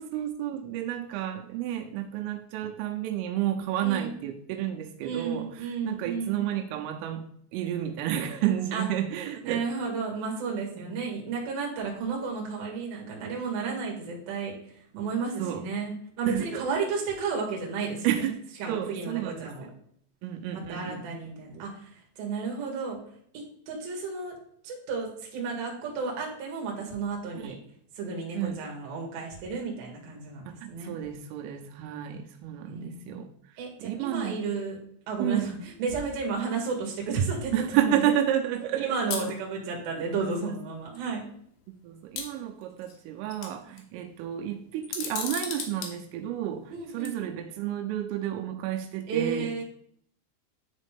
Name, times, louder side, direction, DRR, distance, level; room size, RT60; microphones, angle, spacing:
voice 1, 0.0-5.5 5.8-7.2 7.5-9.9 10.8-11.0 15.4-15.6 16.3-16.6 18.0-18.3 18.7-19.5 20.2-21.6 27.4-27.6 28.3-28.6 30.6-33.3 33.8-34.4 35.2-35.5 37.5-39.1 40.2-40.5 41.8-49.5, right 11 dB, 90° right, 4 dB, 3.2 m, -31 dB
voice 2, 3.8-4.2 5.0-6.4 8.7-8.9 9.4-18.3 18.6-19.7 20.5-23.0 23.3-24.4 24.6-27.5 27.9-30.9 32.6-33.2 33.6-34.8 35.1-38.0 38.8-41.2 46.7-47.2 49.1-49.6, right 5 dB, 60° right, -1 dB, 3.1 m, -32 dB
sound 1, 39.1-39.3 40.5-40.6 41.0-41.1 42.2-43.0 43.3-43.8 44.8-45.9 46.9-47.1, left 6 dB, 70° left, 2.6 m, -34 dB
11.0 x 4.1 x 3.4 m, 0.64 s
omnidirectional pair, 5.8 m